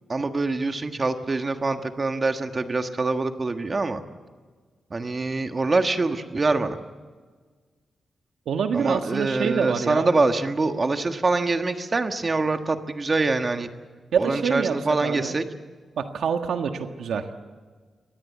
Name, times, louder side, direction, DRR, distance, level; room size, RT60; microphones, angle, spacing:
voice 1, 0.1-4.0 4.9-6.8 8.7-13.7 14.2-15.5, right 3 dB, 25° right, 7 dB, 1.5 m, -24 dB
voice 2, 8.4-10.1 14.1-15.4 16.0-17.4, right 6 dB, 85° right, 6 dB, 1.6 m, -26 dB
24.0 x 20.0 x 8.4 m, 1.5 s
wide cardioid pair, 155°, 0 cm